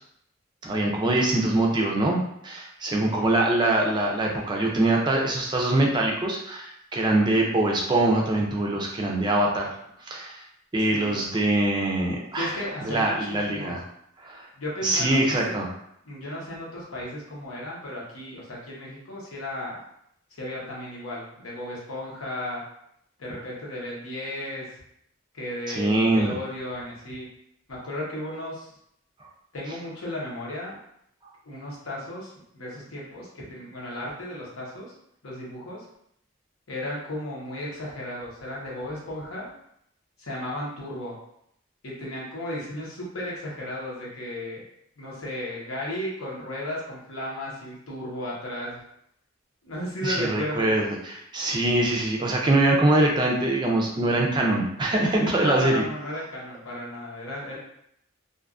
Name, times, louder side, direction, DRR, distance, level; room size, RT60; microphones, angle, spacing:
voice 1, 0.6-9.7 10.0-10.4 10.7-12.6 12.8-13.8 14.2-14.5 14.8-15.7 25.8-26.3 50.0-55.8, right 2 dB, 20° right, -1 dB, 0.3 m, -23 dB
voice 2, 10.9-11.2 12.3-13.8 14.6-15.6 16.0-19.8 20.3-22.6 23.2-24.7 25.3-27.3 27.7-28.7 29.5-30.8 31.4-34.9 35.2-35.8 36.7-39.5 40.2-41.2 41.8-44.6 45.0-48.8 49.6-50.7 55.4-57.6, left 1 dB, 80° left, -4 dB, 0.9 m, -34 dB
2.5 x 2.3 x 2.4 m, 0.74 s
head